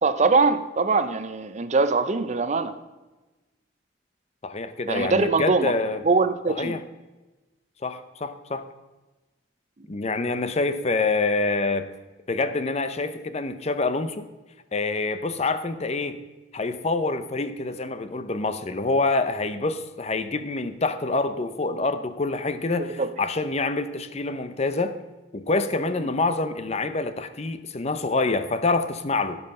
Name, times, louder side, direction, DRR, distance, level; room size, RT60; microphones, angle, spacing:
voice 1, 0.0-2.7 4.9-5.7 6.0-6.8 22.8-23.1, right 4 dB, 40° right, 11 dB, 0.6 m, -22 dB
voice 2, 4.4-6.0 6.5-6.8 7.8-8.6 9.9-11.9 12.3-14.3 14.7-16.2 16.5-25.0 25.3-29.4, left 3 dB, 35° left, 11 dB, 0.6 m, -26 dB
15.5 x 5.6 x 5.4 m, 1.1 s
head